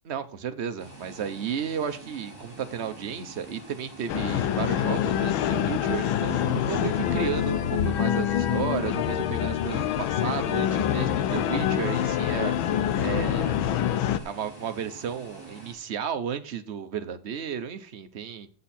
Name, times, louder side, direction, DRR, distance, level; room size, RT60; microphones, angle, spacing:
voice 1, 0.1-12.5 13.0-13.5 14.2-18.5, right 8 dB, 65° right, 9 dB, 0.6 m, -33 dB
sound 1, 0.8-15.7, right 2 dB, 20° left, 5.2 m, -46 dB
sound 2, 4.1-14.2, left 10 dB, 80° left, 1.5 m, -26 dB
10.5 x 8.1 x 4.2 m, 0.39 s
omnidirectional pair, 2.2 m